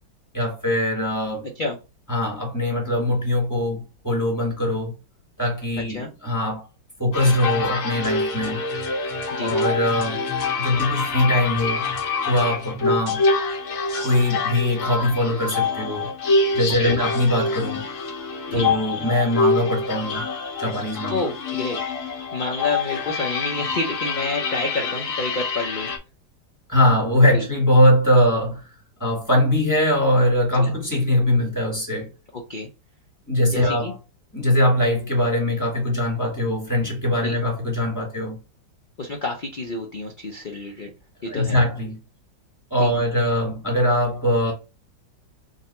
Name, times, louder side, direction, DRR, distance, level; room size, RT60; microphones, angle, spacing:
voice 1, 0.3-1.5 2.1-4.9 5.4-6.6 7.0-8.6 9.4-10.2 10.6-11.8 12.3-13.2 14.0-16.1 16.5-17.8 18.5-20.3 20.6-21.2 26.7-28.6 29.0-32.1 33.3-33.9 34.3-38.4 41.3-42.0 42.7-44.5, left 1 dB, 10° left, 1.7 m, -21 dB
sound 1, 7.1-26.0, left 3 dB, 50° left, 1.1 m, -26 dB
voice 2, 21.1-25.9 27.3-27.5 30.6-30.7 32.5-32.7 33.5-33.9 37.2-37.4 39.0-40.9 41.2-41.6 42.8-42.9, left 2 dB, 80° left, 0.4 m, -29 dB
3.8 x 2.7 x 4.2 m
omnidirectional pair, 1.9 m